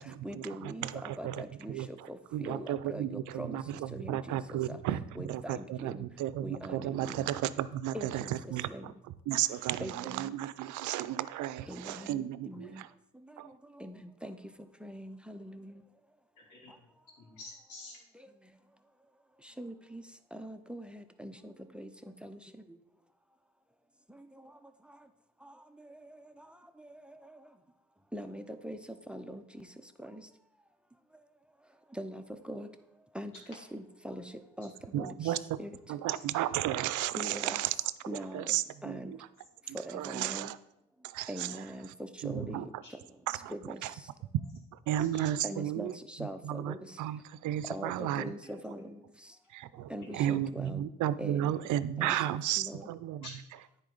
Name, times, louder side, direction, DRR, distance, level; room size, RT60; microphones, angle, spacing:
voice 1, 0.2-3.6 3.9-4.8 5.2-6.0 6.4-7.3 7.9-8.3 8.7-8.9 9.8-10.3 11.7-12.8 13.8-14.4 14.8-15.8 19.6-20.0 20.3-21.9 22.2-22.4 25.4-25.5 25.9-26.5 26.8-27.0 28.1-28.8 29.1-29.4 30.0-30.2 31.9-32.7 33.1-34.2 34.6-35.3 35.6-35.8 37.2-37.6 38.1-38.5 38.8-39.2 39.7-40.5 41.3-42.7 43.5-43.8 45.4-46.9 47.7-49.0 49.9-50.9 51.2-52.2 52.6-52.9, equal, 5° right, 9 dB, 0.5 m, -42 dB
voice 2, 1.0-1.4 1.7-1.9 2.3-3.6 4.1-5.0 5.3-8.2 8.5-8.7 9.3-9.8 10.2-12.7 13.4-13.5 34.9-35.4 35.9-37.7 38.3-39.0 39.7-40.5 41.1-41.3 42.2-42.6 44.9-45.9 46.5-48.2 49.5-53.2, right 12 dB, 80° right, 15 dB, 0.5 m, -33 dB
voice 3, 16.4-16.8 17.2-18.0 35.2-35.3 42.8-42.9 44.9-45.3 48.4-48.5 53.2-53.3, left 2 dB, 80° left, -2 dB, 2.7 m, -49 dB
9.7 x 4.4 x 3.9 m, 0.79 s
cardioid pair, 90°, 30 cm